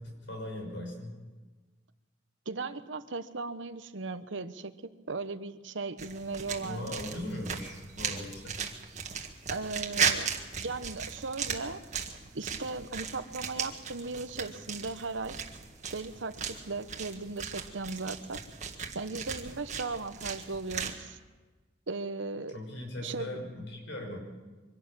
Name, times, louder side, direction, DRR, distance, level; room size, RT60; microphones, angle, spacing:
voice 1, 0.2-1.2 6.6-8.6 22.5-24.2, left 1 dB, 75° left, 2 dB, 6.2 m, -39 dB
voice 2, 2.5-4.7 5.1-7.0 9.5-10.3 10.6-11.8 12.3-15.4 15.9-18.4 18.9-21.2 21.9-22.6 23.0-23.4, right 3 dB, 80° right, 11 dB, 1.1 m, -37 dB
sound 1, 6.0-21.0, right 6 dB, 40° right, 1.8 m, -37 dB
24.0 x 12.0 x 8.9 m, 1.3 s
head